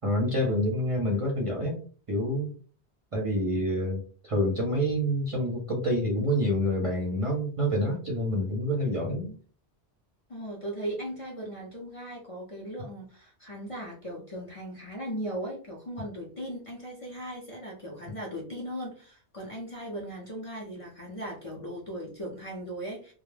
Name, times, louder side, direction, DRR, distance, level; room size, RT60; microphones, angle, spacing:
voice 1, 0.0-1.7 2.1-2.5 3.1-9.3, equal, 35° right, -2 dB, 0.6 m, -27 dB
voice 2, 10.3-23.1, right 1 dB, 40° left, -5 dB, 0.6 m, -38 dB
2.2 x 2.0 x 3.2 m, 0.42 s
omnidirectional pair, 1.1 m